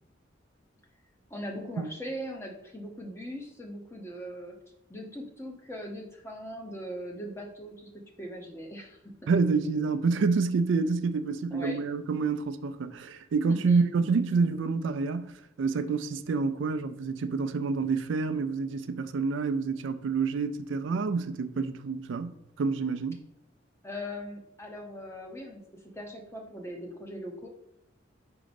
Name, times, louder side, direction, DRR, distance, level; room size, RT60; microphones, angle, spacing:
voice 1, 1.3-4.6 4.9-9.3 11.5-11.8 13.5-13.8 23.8-27.5, equal, 15° left, 0.8 m, -40 dB
voice 2, 9.3-23.2, right 4 dB, 75° right, 0.4 m, -28 dB
5.0 x 3.8 x 5.2 m
head